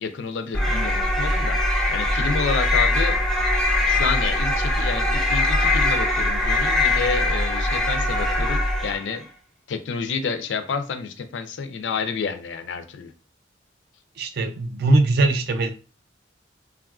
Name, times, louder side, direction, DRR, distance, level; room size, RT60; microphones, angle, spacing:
voice 1, 0.0-3.2 3.9-9.3 9.7-13.1, left 5 dB, 75° left, 0.4 m, -29 dB
sound 1, 0.5-9.1, left 1 dB, 5° left, 0.4 m, -22 dB
voice 2, 14.2-15.7, right 2 dB, 60° right, 0.4 m, -20 dB
3.4 x 2.4 x 2.3 m
head